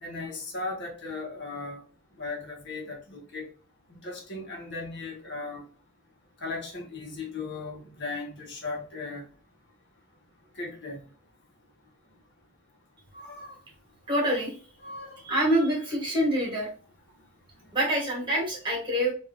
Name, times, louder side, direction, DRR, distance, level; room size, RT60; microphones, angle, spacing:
voice 1, 0.0-1.8 2.2-3.5 3.9-5.7 6.4-9.2 10.5-11.0 13.1-13.6 14.8-15.2, left 3 dB, 55° left, 1.2 m, -37 dB
voice 2, 14.1-14.5 15.2-16.7 17.7-19.1, right 1 dB, 25° right, 1.9 m, -26 dB
3.4 x 2.7 x 3.6 m
head